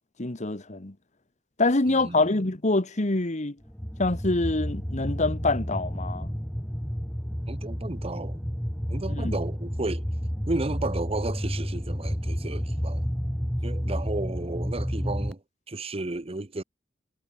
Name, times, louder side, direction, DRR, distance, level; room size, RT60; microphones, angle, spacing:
voice 1, 0.2-0.9 1.6-3.6 4.0-6.3 9.1-9.4, left 2 dB, 40° left, 1.5 m, -25 dB
voice 2, 1.9-2.2 7.4-8.4 8.9-10.0 10.5-13.1 13.6-15.4 15.7-16.6, right 2 dB, 30° right, 1.0 m, -33 dB
sound 1, 3.7-15.3, equal, 5° left, 2.1 m, -31 dB
head